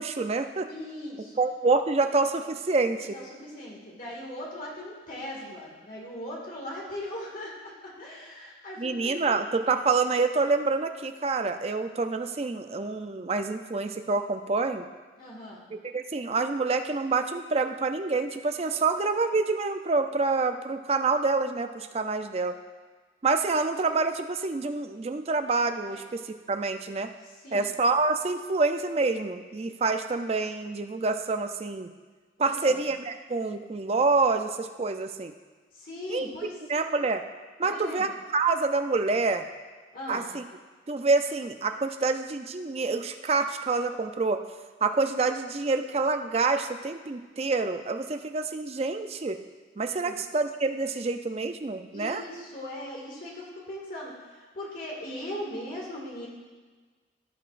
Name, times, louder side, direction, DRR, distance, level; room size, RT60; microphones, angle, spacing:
voice 1, 0.0-0.7 1.4-3.2 8.8-14.9 15.8-22.6 23.2-27.1 27.5-31.9 32.4-35.3 36.1-36.3 36.7-37.2 37.6-39.5 40.1-40.4 40.9-44.4 44.8-49.4 49.8-52.2, right 3 dB, 30° right, 8 dB, 0.4 m, -27 dB
voice 2, 0.7-1.4 3.1-9.4 15.2-15.7 25.9-26.0 27.2-27.7 32.4-32.8 35.7-36.5 37.6-38.1 39.9-40.3 50.0-50.2 51.9-56.3, left 1 dB, 45° left, -3 dB, 2.0 m, -39 dB
16.0 x 5.8 x 2.5 m, 1.4 s
head